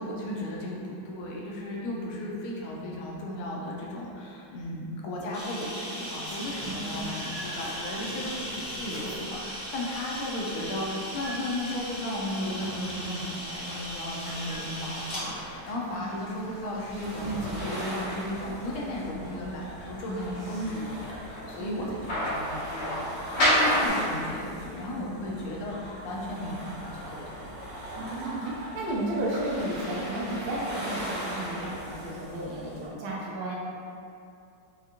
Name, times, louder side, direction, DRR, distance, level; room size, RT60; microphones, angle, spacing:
voice 1, 0.0-27.6, left 1 dB, 80° left, -3 dB, 1.4 m, -35 dB
Camera, 5.3-15.2, equal, 30° left, 0.5 m, -38 dB
sound 1, 6.2-23.9, equal, 45° left, 0.9 m, -35 dB
voice 2, 6.6-7.1 8.1-8.2 15.9-16.0 17.2-17.6 21.6-21.9 27.9-33.6, right 1 dB, 75° right, -5 dB, 1.5 m, -33 dB
sound 2, 16.9-32.9, equal, 55° right, 1.3 m, -39 dB
4.8 x 2.4 x 2.8 m, 2.5 s
omnidirectional pair, 2.3 m